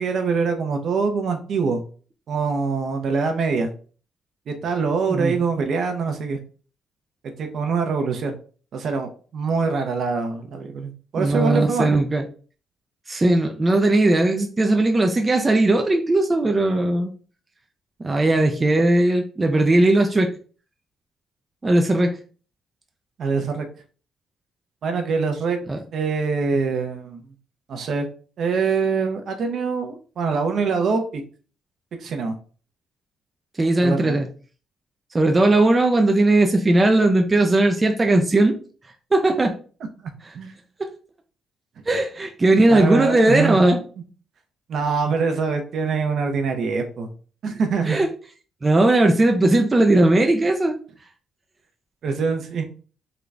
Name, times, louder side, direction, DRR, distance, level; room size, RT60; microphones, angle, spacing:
voice 1, 0.0-1.8 2.3-3.7 4.5-6.4 7.4-8.4 8.7-11.9 23.2-23.7 24.8-25.6 25.9-27.2 27.7-28.1 28.4-31.2 32.0-32.4 33.8-34.2 40.0-40.5 42.7-43.6 44.7-47.1 47.4-48.0 52.0-52.6, right 5 dB, 65° right, 5 dB, 0.7 m, -24 dB
voice 2, 11.1-12.2 13.1-17.1 18.0-20.3 21.6-22.1 25.7-25.8 33.6-34.3 35.1-38.6 39.1-39.5 41.9-43.8 47.9-48.1 48.6-50.8, right 2 dB, 25° right, 4 dB, 0.5 m, -18 dB
3.8 x 2.3 x 3.2 m, 0.40 s
cardioid pair, 90°, 0 cm